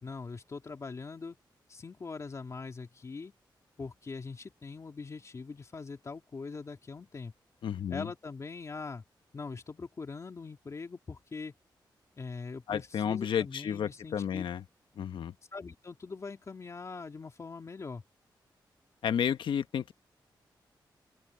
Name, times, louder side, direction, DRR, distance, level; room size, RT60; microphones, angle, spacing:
voice 1, 0.0-1.4 1.7-3.3 3.8-7.3 7.9-9.0 9.3-11.5 12.2-14.4 15.5-18.0, left 4 dB, 40° left, 2.9 m, -42 dB
voice 2, 7.6-8.1 12.7-14.6 15.0-15.3 19.0-19.9, left 8 dB, 90° left, 1.0 m, -32 dB
open air
wide cardioid pair, 120°, 8 cm